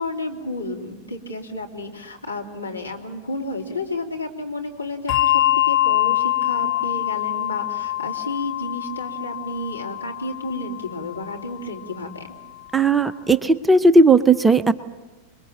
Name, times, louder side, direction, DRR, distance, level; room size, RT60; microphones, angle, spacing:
voice 1, 0.0-12.3, left 2 dB, 80° left, 0 dB, 2.7 m, -31 dB
Bell, 5.1-12.0, left 13 dB, 35° left, 1.8 m, -24 dB
voice 2, 12.7-14.7, right 3 dB, 10° right, 13 dB, 0.7 m, -16 dB
26.0 x 21.5 x 7.5 m, 1.2 s
figure-of-eight pair, 90°, 0 cm